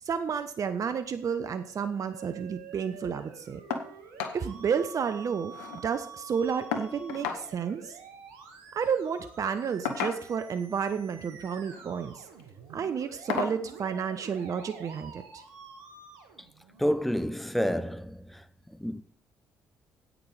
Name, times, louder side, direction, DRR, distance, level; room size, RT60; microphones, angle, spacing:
voice 1, 0.0-3.6 4.3-5.5 5.8-8.0 8.7-12.3 12.7-15.4, right 7 dB, 50° right, 0.9 m, -31 dB
Musical instrument, 1.3-17.2, right 6 dB, 80° right, 1.6 m, -49 dB
sound 1, 3.7-3.9 4.2-4.4 4.8-4.9 5.1-5.8 6.7-7.4 8.7-8.9 9.8-10.5 11.5-11.9 12.3-12.5 13.3-13.6 14.9-15.0 15.5-15.6, left 6 dB, 80° left, 1.1 m, -34 dB
voice 2, 16.8-18.4 18.8-19.0, equal, ahead, 0.8 m, -29 dB
10.0 x 8.8 x 4.9 m
hypercardioid pair, 50°, 7 cm